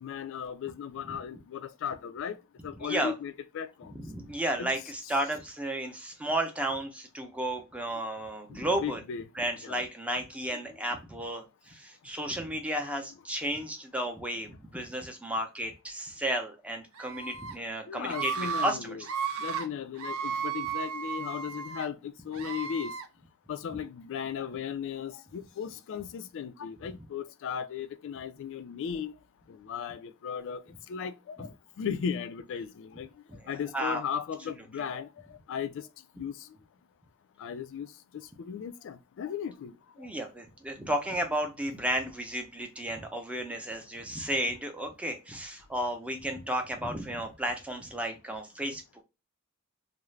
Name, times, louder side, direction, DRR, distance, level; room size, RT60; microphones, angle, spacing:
voice 1, 0.0-2.4 2.6-4.0 4.6-4.7 8.8-9.2 9.6-9.8 17.9-19.0 19.4-22.9 23.5-29.1 29.5-30.6 30.9-31.5 31.8-33.1 33.5-35.1 35.5-35.8 36.2-36.4 37.4-37.9 38.4-39.7, left 7 dB, 60° left, 0.3 m, -36 dB
voice 2, 2.8-3.1 3.9-9.0 9.3-19.1 23.7-23.8 31.4-31.5 33.3-34.0 40.0-49.0, right 1 dB, 5° right, 0.5 m, -33 dB
Screaming, 17.0-17.5 18.1-18.7 19.0-19.6 20.0-21.9 22.3-23.0, right 7 dB, 65° right, 0.4 m, -34 dB
2.4 x 2.0 x 3.0 m
head